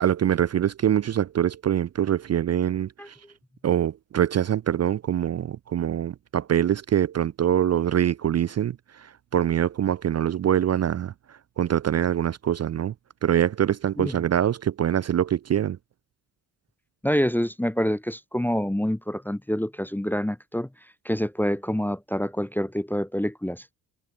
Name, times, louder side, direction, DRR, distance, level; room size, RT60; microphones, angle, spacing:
voice 1, 0.0-3.2 3.6-12.9 13.2-15.8, right 10 dB, 35° right, 0.6 m, -24 dB
voice 2, 17.0-20.7 21.0-23.6, equal, 5° left, 0.7 m, -26 dB
supercardioid pair, 65°, 44 cm